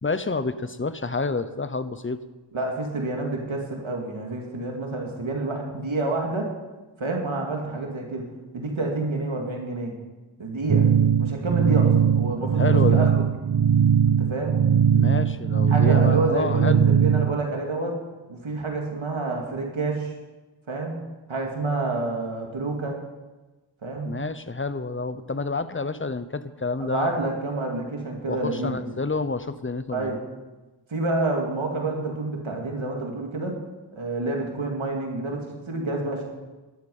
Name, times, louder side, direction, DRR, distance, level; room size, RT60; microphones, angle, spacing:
voice 1, 0.0-2.2 12.4-13.1 14.9-16.8 24.0-27.2 28.3-30.2, left 3 dB, 25° left, 13 dB, 0.8 m, -29 dB
voice 2, 2.5-6.5 7.0-8.2 8.5-9.9 10.4-10.9 11.2-13.2 14.0-14.6 15.7-18.0 18.3-20.1 20.7-21.0 21.3-23.0 23.8-24.1 26.8-29.0 29.9-30.2 30.9-33.5 33.9-36.3, right 2 dB, 80° right, 0 dB, 2.4 m, -28 dB
sound 1, 10.7-17.4, right 8 dB, 50° right, 0.6 m, -20 dB
13.5 x 11.5 x 5.5 m, 1.2 s
wide cardioid pair, 55°, 47 cm